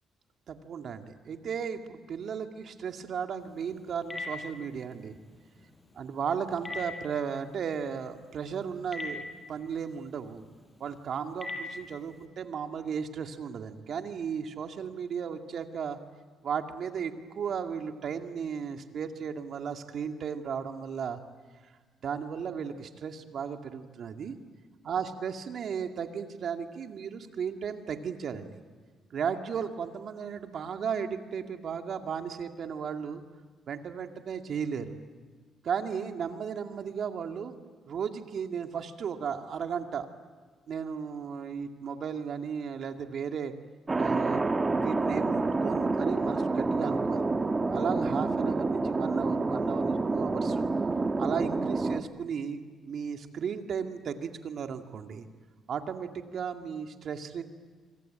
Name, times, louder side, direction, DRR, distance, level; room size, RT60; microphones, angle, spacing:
voice 1, 0.5-5.2 6.0-9.2 9.5-10.4 10.8-16.0 16.4-21.2 21.6-21.7 22.0-24.4 24.8-28.5 29.1-33.2 33.7-34.9 35.6-37.5 37.9-40.1 40.7-43.5 44.0-44.5 44.8-47.2 47.7-50.7 51.2-52.6 52.9-55.3 55.7-57.4, right 7 dB, 60° right, 5 dB, 2.3 m, -35 dB
Telephone, 3.4-12.3, left 2 dB, 25° left, 6.0 m, -44 dB
Thunder, 43.9-52.0, right 3 dB, 25° right, 1.5 m, -28 dB
25.5 x 25.0 x 9.0 m, 1.5 s
cardioid pair, 90°, 0 cm